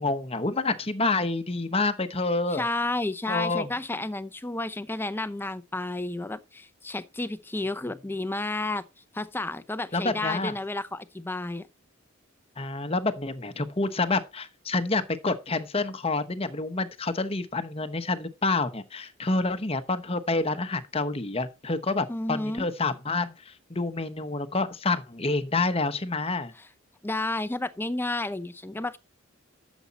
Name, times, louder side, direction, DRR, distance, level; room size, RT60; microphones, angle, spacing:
voice 1, 0.0-2.6 3.3-3.7 9.9-10.5 12.6-26.5, left 3 dB, 30° left, 1.0 m, -28 dB
voice 2, 2.5-8.8 9.1-11.7 22.1-22.7 27.0-29.0, left 2 dB, 10° left, 0.6 m, -31 dB
12.5 x 7.2 x 4.1 m
head